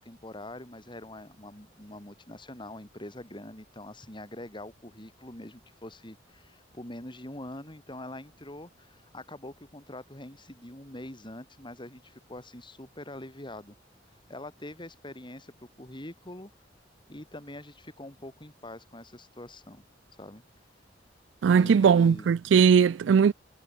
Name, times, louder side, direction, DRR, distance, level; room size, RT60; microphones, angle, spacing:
voice 1, 0.0-13.8 14.3-16.5 17.1-19.8 20.1-20.4 21.5-22.3, left 1 dB, 25° left, 4.3 m, -44 dB
voice 2, 21.4-23.3, right 6 dB, 75° right, 0.3 m, -19 dB
head